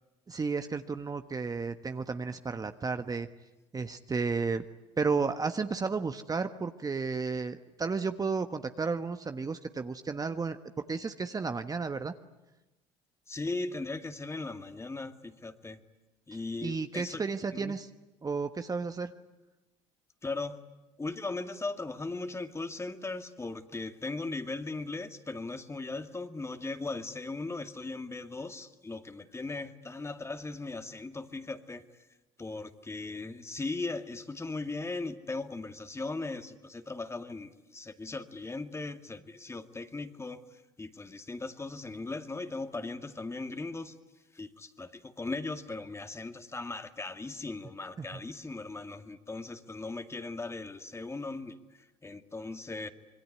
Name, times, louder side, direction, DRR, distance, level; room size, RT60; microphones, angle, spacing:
voice 1, 0.3-3.3 3.7-4.6 5.0-10.6 10.9-12.1 16.6-17.9 18.2-19.1, right 4 dB, 25° right, 8 dB, 1.3 m, -32 dB
voice 2, 13.3-15.8 16.3-17.2 17.5-17.8 20.2-20.6 21.0-31.8 32.4-44.0 44.3-52.9, left 3 dB, 20° left, 8 dB, 2.1 m, -38 dB
26.5 x 22.0 x 9.8 m, 1.1 s
hypercardioid pair, 70°, 15 cm